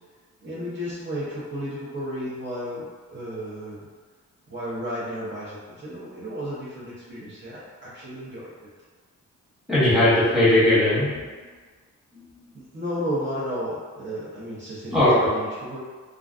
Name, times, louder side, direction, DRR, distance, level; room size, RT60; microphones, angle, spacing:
voice 1, 0.4-3.9 4.5-8.5 12.5-15.8, equal, 35° right, -10 dB, 0.7 m, -33 dB
voice 2, 9.7-11.2 12.1-12.2 14.9-15.3, left 1 dB, ahead, -10 dB, 1.0 m, -19 dB
2.3 x 2.3 x 2.4 m, 1.5 s
cardioid pair, 90°, 31 cm